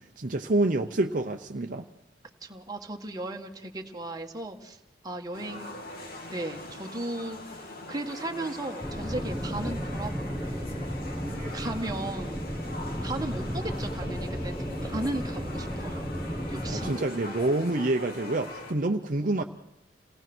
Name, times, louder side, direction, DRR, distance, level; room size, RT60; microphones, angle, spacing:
voice 1, 0.0-1.9 11.2-11.6 16.6-19.4, right 2 dB, 50° right, 4 dB, 0.9 m, -28 dB
voice 2, 2.4-4.8 5.0-5.7 6.3-10.8 11.5-12.5 13.0-14.6 14.8-16.1 16.5-17.0, right 2 dB, 20° right, 3 dB, 1.7 m, -36 dB
sound 1, 5.3-18.7, left 2 dB, 60° left, 2.9 m, -42 dB
sound 2, 8.8-16.9, equal, 10° left, 1.1 m, -34 dB
29.0 x 18.0 x 6.2 m, 0.88 s
head